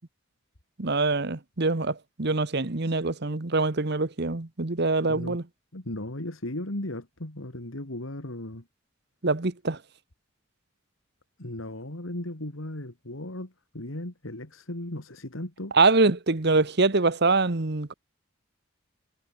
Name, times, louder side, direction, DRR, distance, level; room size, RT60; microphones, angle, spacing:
voice 1, 0.8-5.4 9.2-9.8 15.7-17.9, right 3 dB, 55° right, 1.2 m, -24 dB
voice 2, 5.7-8.7 11.4-15.7, left 1 dB, 80° left, 2.8 m, -36 dB
head